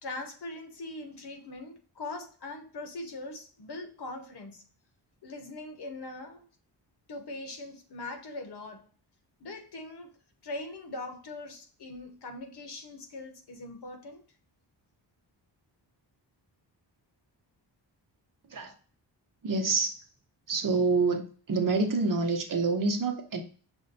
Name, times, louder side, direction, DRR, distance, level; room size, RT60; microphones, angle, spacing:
voice 1, 0.0-4.6 5.2-6.4 7.1-8.8 9.4-10.1 10.4-14.2, left 2 dB, 60° left, 1.1 m, -41 dB
voice 2, 19.4-19.9 20.5-23.4, right 3 dB, 45° right, 0.8 m, -27 dB
6.2 x 2.1 x 4.0 m
wide cardioid pair, 125°, 44 cm